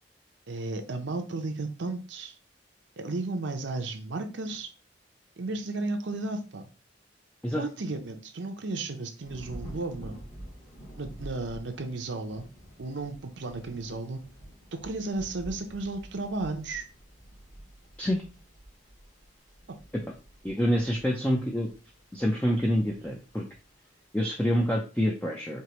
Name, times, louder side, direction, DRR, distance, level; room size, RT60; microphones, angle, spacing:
voice 1, 0.5-2.4 3.0-4.7 5.4-6.7 7.5-10.2 11.0-12.5 12.8-14.2 14.8-16.9 19.7-19.8, right 2 dB, 75° right, 6 dB, 0.7 m, -34 dB
Thunder / Rain, 9.2-24.8, right 1 dB, 45° left, 2.1 m, -48 dB
voice 2, 20.4-21.7 22.1-23.4 24.1-25.6, equal, 10° left, -1 dB, 0.4 m, -27 dB
4.7 x 2.9 x 2.9 m, 0.33 s
head